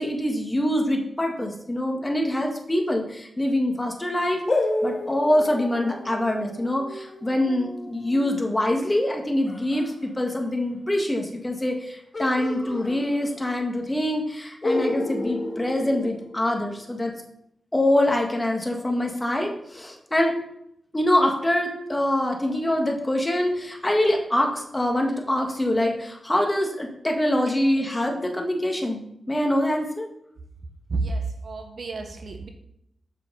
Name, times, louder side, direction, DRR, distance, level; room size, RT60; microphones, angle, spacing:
voice 1, 0.0-4.4 4.8-17.1 17.7-20.3 20.9-30.1, left 1 dB, 20° left, 2 dB, 1.7 m, -24 dB
sound 1, 4.5-9.9 12.1-13.6 13.9-14.0 14.6-16.8, left 2 dB, 40° left, 1.9 m, -31 dB
voice 2, 30.9-32.5, right 3 dB, 60° right, 5 dB, 1.3 m, -30 dB
7.6 x 7.3 x 4.0 m, 0.75 s
cardioid pair, 60°, 0 cm